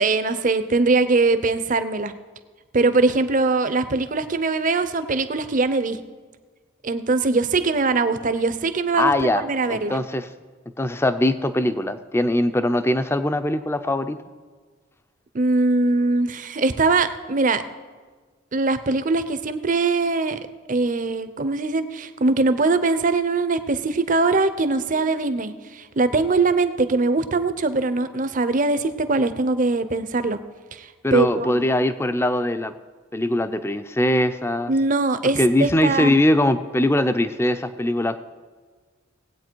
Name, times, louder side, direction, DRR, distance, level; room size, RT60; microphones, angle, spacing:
voice 1, 0.0-2.1 2.7-6.0 6.8-10.0 15.3-17.6 18.5-20.4 20.7-30.4 30.7-31.7 34.7-36.2, right 3 dB, 40° right, 12 dB, 0.6 m, -21 dB
voice 2, 9.0-10.3 10.8-14.2 31.0-32.7 33.1-34.7 35.4-38.2, left 1 dB, 10° left, 11 dB, 0.5 m, -21 dB
18.5 x 8.4 x 4.6 m, 1.4 s
head